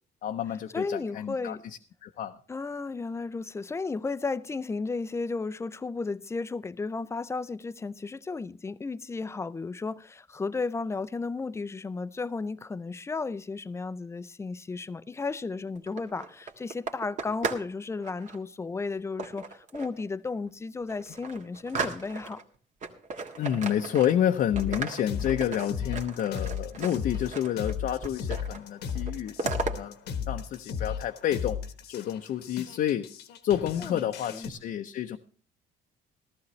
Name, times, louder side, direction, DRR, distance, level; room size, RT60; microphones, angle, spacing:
voice 1, 0.2-1.6 2.0-2.3 23.4-29.9 30.3-31.6 31.9-33.1 33.4-35.2, left 10 dB, 55° left, 0.7 m, -29 dB
voice 2, 0.7-1.6 2.5-22.4 33.8-34.5, left 4 dB, 15° left, 0.5 m, -34 dB
sound 1, 15.7-17.7 18.0-18.4 19.2-20.0 20.5-20.6 20.9-22.4 22.8-24.3 24.6-27.7 28.0-28.6 28.9-29.7, right 4 dB, 45° right, 1.6 m, -36 dB
sound 2, 24.5-34.5, left 7 dB, 80° left, 1.2 m, -35 dB
14.5 x 13.5 x 3.1 m
cardioid pair, 110°, 17 cm